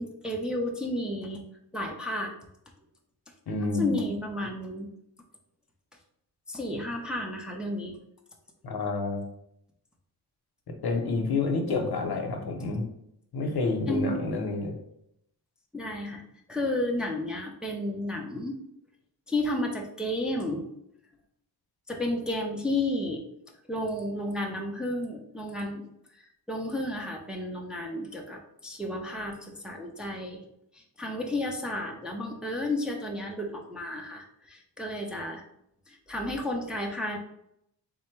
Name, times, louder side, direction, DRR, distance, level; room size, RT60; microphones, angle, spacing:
voice 1, 0.0-1.4 1.7-2.3 3.8-4.9 6.5-8.0 13.9-14.3 15.7-16.2 16.5-18.6 19.3-20.7 21.9-23.2 23.7-30.4 30.7-35.4 35.9-37.2, left 1 dB, ahead, 1 dB, 0.4 m, -32 dB
voice 2, 3.5-4.0 8.6-9.2 10.8-12.9 13.3-14.7, left 3 dB, 65° left, 3 dB, 0.7 m, -28 dB
3.7 x 2.2 x 4.4 m, 0.76 s
wide cardioid pair, 160°, 41 cm